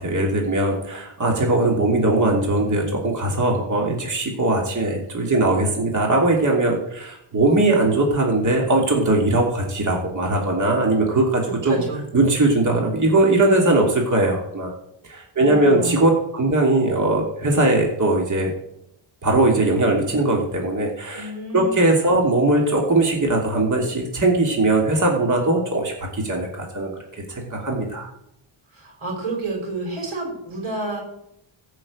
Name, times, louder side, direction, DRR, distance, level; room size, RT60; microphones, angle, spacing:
voice 1, 0.0-11.8 12.1-14.7 15.0-18.5 19.2-26.9 27.3-28.1, right 2 dB, 40° right, 0 dB, 3.0 m, -20 dB
voice 2, 11.4-12.4 15.3-16.1 21.1-21.9 28.7-31.0, right 2 dB, 80° right, 2 dB, 5.0 m, -30 dB
14.5 x 6.5 x 8.6 m, 0.79 s
cardioid pair, 85°, 48 cm